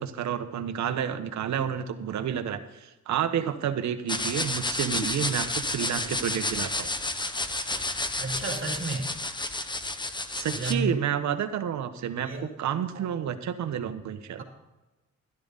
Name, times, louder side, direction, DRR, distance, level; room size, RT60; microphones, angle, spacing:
voice 1, 0.0-6.9 10.3-14.4, right 9 dB, 65° right, 9 dB, 1.2 m, -30 dB
sound 1, 4.1-10.7, left 2 dB, 15° left, 1.0 m, -31 dB
voice 2, 8.2-9.1 10.5-11.0 12.2-12.5 12.8-13.1 14.4-14.5, right 2 dB, 45° right, 1 dB, 2.6 m, -32 dB
12.0 x 12.0 x 4.1 m, 1.1 s
cardioid pair, 90°, 30 cm